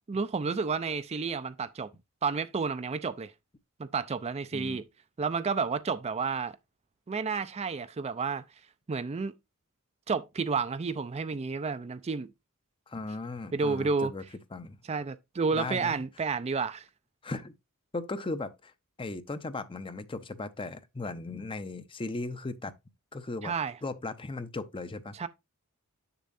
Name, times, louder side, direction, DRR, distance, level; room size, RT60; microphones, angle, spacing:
voice 1, 0.1-1.9 2.2-3.3 3.8-4.8 5.2-6.6 7.1-8.4 8.9-9.3 10.1-12.3 13.5-14.1 14.9-16.8 23.4-23.7 25.1-25.3, right 4 dB, 30° right, 0.4 m, -31 dB
voice 2, 12.9-14.2 14.5-14.8 15.5-16.0 17.2-17.5 17.9-18.7 19.0-22.7 23.1-23.5 23.8-25.2, left 3 dB, 25° left, 0.6 m, -37 dB
7.4 x 6.9 x 2.6 m
head